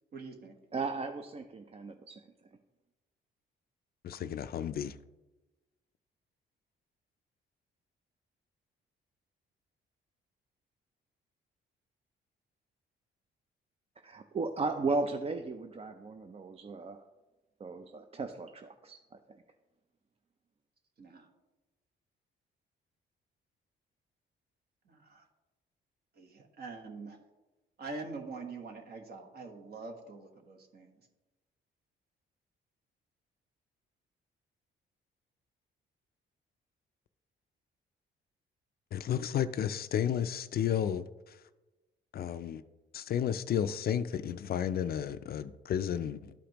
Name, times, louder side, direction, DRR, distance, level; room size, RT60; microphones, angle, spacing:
voice 1, 0.1-0.5 21.0-21.3 24.9-25.2 26.2-27.2 27.8-30.9, right 3 dB, 55° right, 1.3 m, -44 dB
voice 2, 0.7-2.2 14.0-17.0 17.6-19.4, right 3 dB, 30° right, 0.5 m, -36 dB
voice 3, 4.0-5.0 38.9-41.4 42.1-42.6 42.9-46.3, left 9 dB, 50° left, 0.4 m, -32 dB
12.0 x 5.0 x 3.0 m
cardioid pair, 90°, 20 cm